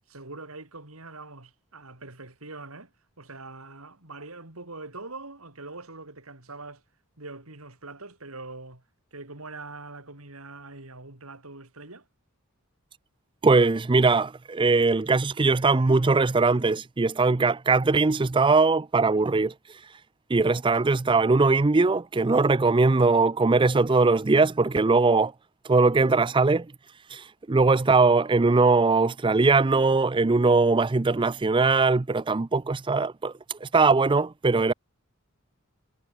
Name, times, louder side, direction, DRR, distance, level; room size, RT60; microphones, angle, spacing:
voice 1, 0.1-2.9 3.2-6.8 7.2-8.8 9.1-12.1, right 3 dB, 90° right, 5.0 m, -43 dB
voice 2, 13.4-19.5 20.3-25.3 25.6-26.7 27.1-34.7, right 3 dB, 25° right, 0.5 m, -21 dB
head